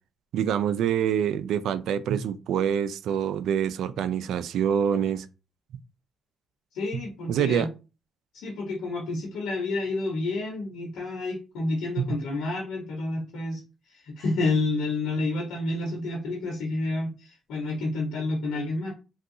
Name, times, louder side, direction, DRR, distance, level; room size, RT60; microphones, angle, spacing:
voice 1, 0.3-5.3 7.3-7.7 12.0-12.1, right 8 dB, 80° right, 0.3 m, -26 dB
voice 2, 6.7-7.7 8.3-13.6 13.9-18.9, left 2 dB, 90° left, 1.1 m, -29 dB
3.6 x 2.3 x 2.7 m
cardioid pair, 90°, 0 cm